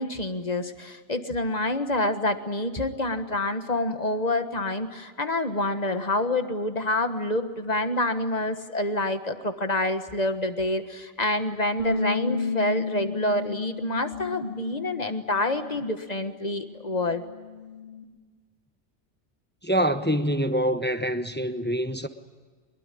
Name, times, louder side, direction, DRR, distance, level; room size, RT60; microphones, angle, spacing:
voice 1, 0.0-17.2, left 1 dB, 35° left, 1.5 m, -27 dB
sound 1, 11.8-16.4 16.6-18.0, left 4 dB, 60° left, 7.3 m, -33 dB
voice 2, 19.6-22.1, equal, 10° left, 0.9 m, -25 dB
23.5 x 22.0 x 10.0 m
omnidirectional pair, 1.2 m